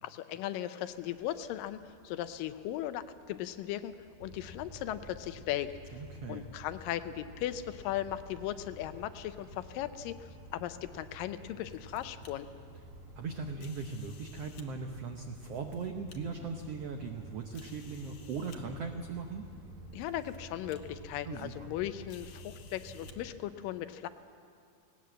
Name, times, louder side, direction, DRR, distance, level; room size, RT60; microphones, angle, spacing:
voice 1, 0.0-3.9 4.2-5.7 6.3-12.5 19.9-24.1, left 12 dB, 80° left, 11 dB, 2.2 m, -37 dB
sound 1, 0.8-20.4, left 1 dB, 40° left, 1.5 m, -64 dB
sound 2, 4.2-23.3, equal, 35° right, 2.6 m, -51 dB
voice 2, 5.9-6.4 13.2-19.4 21.2-21.7, right 4 dB, 80° right, 4 dB, 1.3 m, -39 dB
sound 3, 11.4-12.3 13.6-14.7 15.4-16.2 16.8-16.9 17.5-18.6 19.5-19.6 20.0-20.4 20.7-20.8 22.1-23.2, left 7 dB, 60° left, 2.1 m, -57 dB
18.5 x 18.5 x 7.7 m, 2.3 s
omnidirectional pair, 4.1 m